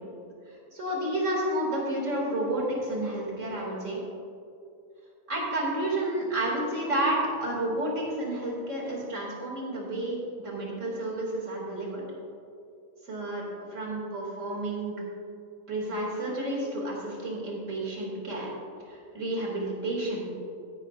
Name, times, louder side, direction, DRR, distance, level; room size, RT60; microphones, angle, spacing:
voice 1, 0.7-4.0 5.3-10.2 10.4-12.0 13.0-13.4 13.7-14.9 15.7-18.5 18.9-20.3, right 1 dB, 55° right, -3 dB, 2.9 m, -30 dB
15.5 x 11.0 x 2.5 m, 2.6 s
omnidirectional pair, 1.5 m